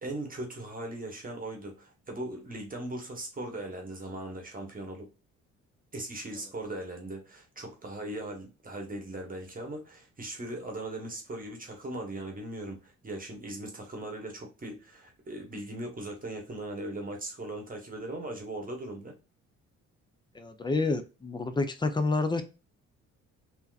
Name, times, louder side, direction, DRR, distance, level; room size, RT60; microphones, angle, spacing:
voice 1, 0.0-5.1 5.9-19.1, right 1 dB, 30° right, 1.1 m, -39 dB
voice 2, 20.3-22.4, left 3 dB, 15° left, 0.6 m, -29 dB
3.5 x 2.8 x 2.4 m
cardioid pair, 90°, 30 cm